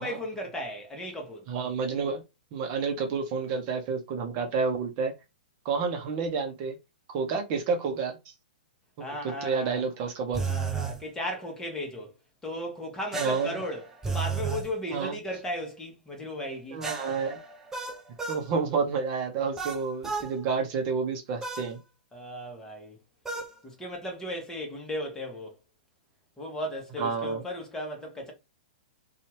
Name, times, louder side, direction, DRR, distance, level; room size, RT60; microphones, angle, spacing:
voice 1, 0.0-1.5 9.0-9.8 10.5-12.1 12.4-16.8 22.1-23.0 23.6-25.5 26.4-28.3, equal, 10° left, 1.0 m, -36 dB
voice 2, 1.5-2.2 2.5-5.1 5.6-6.8 7.1-8.2 9.0-10.5 13.1-13.6 14.9-15.2 16.7-17.4 18.3-21.8 27.0-27.4, right 5 dB, 40° right, 0.8 m, -29 dB
sound 1, 10.3-11.0 13.1-14.7 16.8-18.5 19.6-20.3 21.4-21.7 23.2-23.5, right 5 dB, 10° right, 0.6 m, -33 dB
2.7 x 2.4 x 3.0 m
hypercardioid pair, 120°, 5 cm